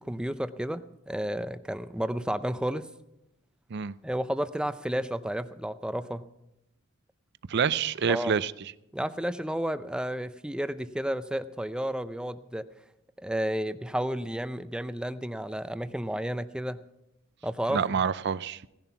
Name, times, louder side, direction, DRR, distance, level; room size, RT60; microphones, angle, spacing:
voice 1, 0.1-2.9 4.0-6.2 8.1-8.3 8.9-12.6 13.2-16.8 17.4-18.0, equal, 5° right, 0.5 m, -32 dB
voice 2, 7.5-8.5 17.7-18.7, right 6 dB, 55° right, 0.5 m, -27 dB
17.0 x 11.0 x 5.8 m
head